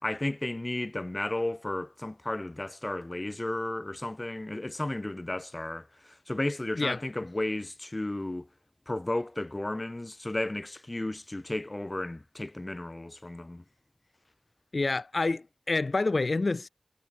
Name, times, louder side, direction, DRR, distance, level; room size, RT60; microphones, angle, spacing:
voice 1, 0.0-8.5 8.9-13.6, left 1 dB, 35° left, 2.0 m, -33 dB
voice 2, 14.7-16.7, left 3 dB, 70° left, 3.1 m, -28 dB
wide cardioid pair, 50°, 0 cm